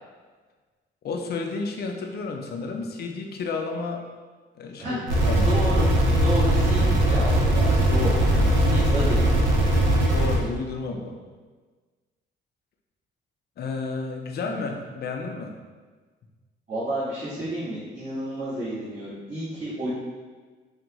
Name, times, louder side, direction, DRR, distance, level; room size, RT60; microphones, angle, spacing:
voice 1, 1.0-4.0 4.6-5.0 5.3-5.5 8.4-9.1 10.1-11.1 13.6-15.5, left 4 dB, 55° left, 3 dB, 0.4 m, -32 dB
sound 1, 5.1-10.4, right 1 dB, 80° right, 0.7 m, -20 dB
voice 2, 5.4-5.9 6.2-8.2 8.7-9.2 16.7-19.9, right 1 dB, 35° right, -14 dB, 1.3 m, -31 dB
3.4 x 2.1 x 2.9 m, 1.4 s
cardioid pair, 90°, 20 cm